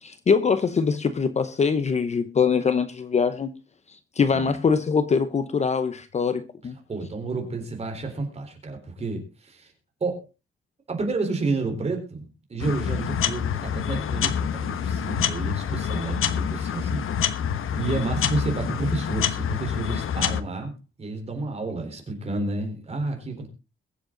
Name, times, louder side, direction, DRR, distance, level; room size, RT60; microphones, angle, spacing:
voice 1, 0.0-3.5 4.2-6.8, left 5 dB, 30° left, 0.8 m, -23 dB
voice 2, 6.9-9.7 10.0-10.3 10.9-17.4 17.8-20.7 21.0-23.5, right 3 dB, 30° right, 4.0 m, -30 dB
sound 1, 12.6-20.4, left 8 dB, 80° left, 1.1 m, -27 dB
22.5 x 7.6 x 3.8 m
wide cardioid pair, 170°, 21 cm